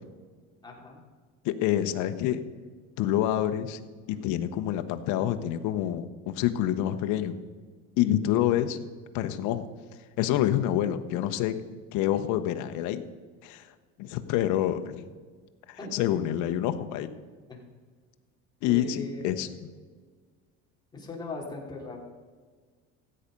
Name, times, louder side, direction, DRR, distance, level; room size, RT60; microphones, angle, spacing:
voice 1, 0.6-1.0 15.8-15.9 17.5-17.6 18.6-19.5 20.9-22.0, left 2 dB, 15° left, -2 dB, 3.3 m, -39 dB
voice 2, 1.4-2.4 3.0-3.8 4.1-7.3 8.0-8.8 9.1-9.6 10.2-11.5 11.9-13.0 13.4-13.6 14.0-15.0 15.7-17.1 18.6-19.5, left 12 dB, 65° left, 9 dB, 1.1 m, -27 dB
15.5 x 8.8 x 5.3 m, 1.5 s
cardioid pair, 125°, 32 cm